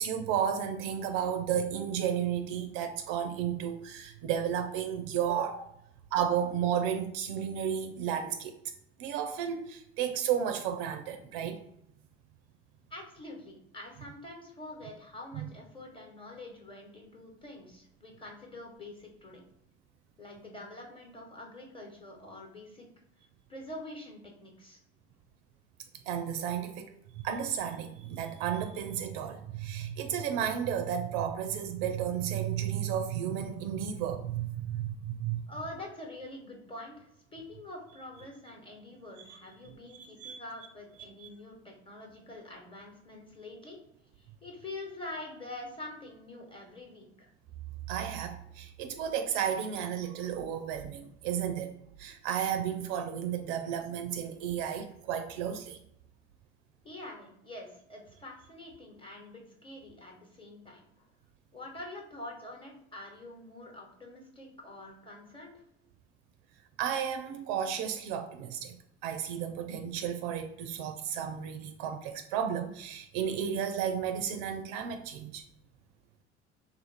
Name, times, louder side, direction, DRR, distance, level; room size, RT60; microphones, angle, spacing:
voice 1, 0.0-5.8 6.1-8.5 9.0-11.6 15.3-15.5 26.1-26.9 27.2-35.4 39.2-39.4 39.9-40.4 41.2-41.3 47.9-51.7 52.0-55.8 66.8-75.4, right 9 dB, 55° right, 7 dB, 0.4 m, -33 dB
voice 2, 12.9-19.4 20.2-22.9 23.5-24.8 35.5-43.8 44.2-47.3 56.8-61.0 61.5-65.6, left 2 dB, 15° left, 0 dB, 1.1 m, -46 dB
2.7 x 2.4 x 3.9 m, 0.76 s
figure-of-eight pair, 60°, 34 cm